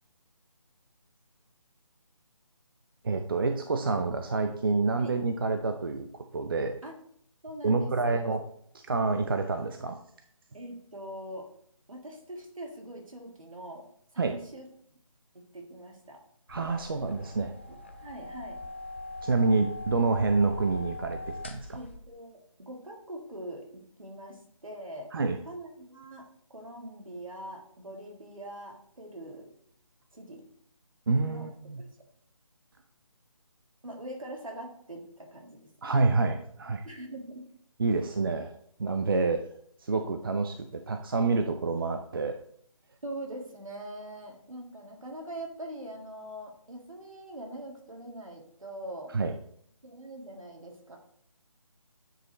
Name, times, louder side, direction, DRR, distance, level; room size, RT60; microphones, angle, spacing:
voice 1, 3.0-6.1 6.3-6.7 7.6-8.4 8.9-10.0 14.2-14.4 16.5-17.8 19.2-21.8 25.1-25.4 31.1-31.8 35.8-36.8 37.8-38.5 38.8-39.4 39.8-42.4 49.1-49.4, right 3 dB, 40° right, 6 dB, 0.5 m, -28 dB
voice 2, 7.4-8.4 10.5-11.5 11.9-13.9 14.1-14.7 15.3-16.2 18.0-18.6 21.7-25.1 25.4-29.5 30.1-30.4 31.3-31.5 31.8-31.9 33.8-35.7 36.8-37.4 43.0-49.1 49.8-51.0, right 1 dB, 75° right, 1 dB, 2.3 m, -42 dB
sound 1, 16.5-22.0, left 2 dB, 20° left, 0.4 m, -41 dB
8.9 x 5.1 x 3.1 m, 0.66 s
figure-of-eight pair, 155°, 17 cm